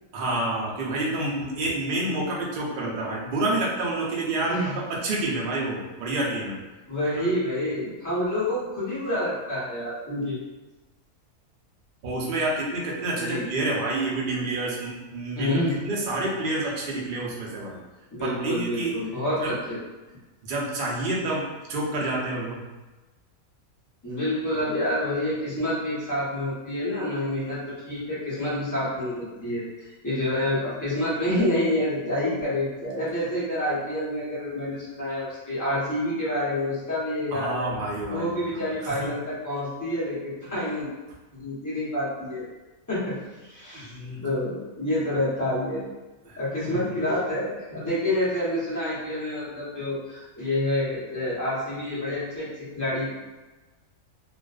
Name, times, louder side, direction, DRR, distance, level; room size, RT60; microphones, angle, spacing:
voice 1, 0.1-6.6 12.0-15.6 15.8-17.8 18.2-19.0 19.4-19.5 20.4-22.6 37.3-39.1 43.7-44.2 46.3-46.4, right 2 dB, 75° right, -4 dB, 0.4 m, -28 dB
voice 2, 4.3-4.8 6.9-10.4 13.2-13.5 15.4-15.8 18.1-19.8 24.0-27.6 27.9-37.7 38.1-40.9 41.4-42.4 42.9-45.9 46.4-53.1, left 1 dB, 20° left, -10 dB, 0.6 m, -28 dB
2.4 x 2.2 x 2.3 m, 1.2 s
omnidirectional pair, 1.6 m